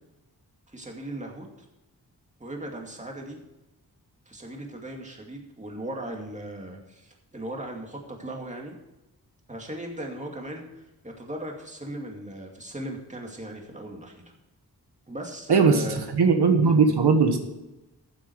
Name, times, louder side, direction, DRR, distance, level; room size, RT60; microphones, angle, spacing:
voice 1, 0.7-1.7 2.4-3.4 4.3-8.8 9.5-14.2 15.1-16.1 16.6-16.8, right 1 dB, 20° right, 1 dB, 2.4 m, -37 dB
voice 2, 16.1-17.4, right 5 dB, 90° right, 5 dB, 1.5 m, -18 dB
14.5 x 7.7 x 4.7 m, 1.0 s
wide cardioid pair, 115°, 38 cm